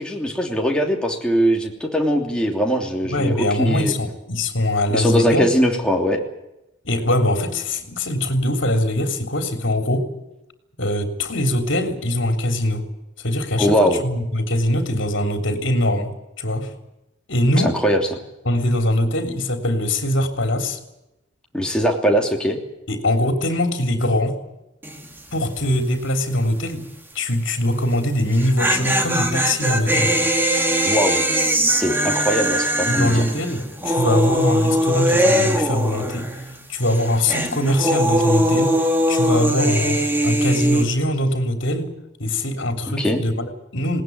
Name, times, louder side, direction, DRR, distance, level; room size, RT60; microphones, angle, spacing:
voice 1, 0.0-3.9 4.9-6.2 13.6-14.0 17.8-18.0 21.5-22.6 30.8-31.2 31.8-33.2 42.9-43.2, equal, 5° left, 0 dB, 3.0 m, -20 dB
voice 2, 3.1-5.4 6.8-10.1 10.8-12.8 13.2-16.1 16.4-16.7 17.3-17.7 18.5-20.8 22.9-24.4 25.3-26.9 27.2-30.2 32.9-36.3 36.7-41.9 42.2-44.0, left 1 dB, 65° left, 5 dB, 3.6 m, -22 dB
sound 1, 24.8-25.2 25.4-25.5 28.2-36.5 36.8-40.8, equal, 10° right, 2.2 m, -21 dB
20.0 x 18.5 x 9.5 m, 0.91 s
head